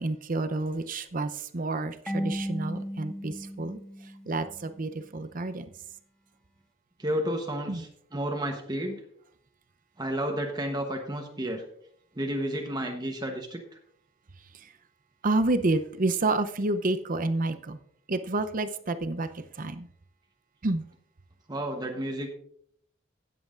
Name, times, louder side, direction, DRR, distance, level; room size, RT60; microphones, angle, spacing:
voice 1, 0.0-3.8 4.3-5.7 7.7-7.8 15.2-17.8 18.1-19.9 20.6-20.8, right 2 dB, 45° right, 11 dB, 0.7 m, -29 dB
Marimba xylophone / Wood, 2.1-4.8, equal, 5° left, 0.7 m, -35 dB
voice 2, 7.0-9.0 10.0-11.6 12.1-13.6 21.5-22.3, right 1 dB, 20° right, 3 dB, 1.0 m, -31 dB
17.0 x 7.7 x 2.5 m, 0.66 s
head